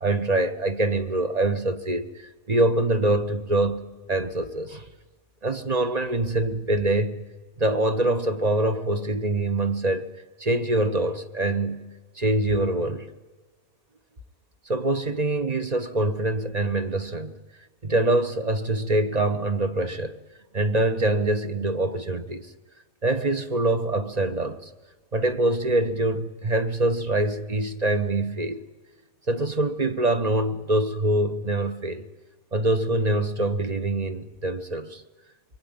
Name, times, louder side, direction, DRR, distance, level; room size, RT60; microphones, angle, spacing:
voice 1, 0.0-3.8 4.1-4.9 5.4-7.2 7.6-10.1 10.4-11.8 12.2-13.1 14.7-17.4 17.8-20.2 20.5-22.5 23.0-24.7 25.1-28.6 29.3-32.0 32.5-35.0, right 2 dB, 30° right, 1.2 m, -24 dB
24.0 x 24.0 x 9.8 m
omnidirectional pair, 1.5 m